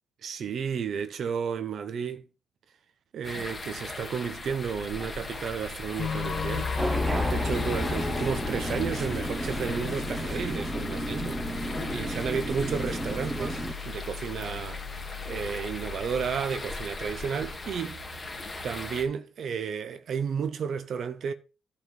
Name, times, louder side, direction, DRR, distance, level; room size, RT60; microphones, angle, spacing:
voice 1, 0.2-2.2 3.1-6.8 7.2-18.0 18.6-21.3, right 6 dB, 60° right, 0.9 m, -32 dB
sound 1, 3.2-19.0, left 3 dB, 20° left, 2.3 m, -39 dB
sound 2, 6.0-16.4, left 5 dB, 45° left, 1.1 m, -35 dB
sound 3, 6.8-13.7, right 1 dB, 20° right, 1.3 m, -33 dB
11.0 x 4.5 x 7.5 m
cardioid pair, 90°, 0 cm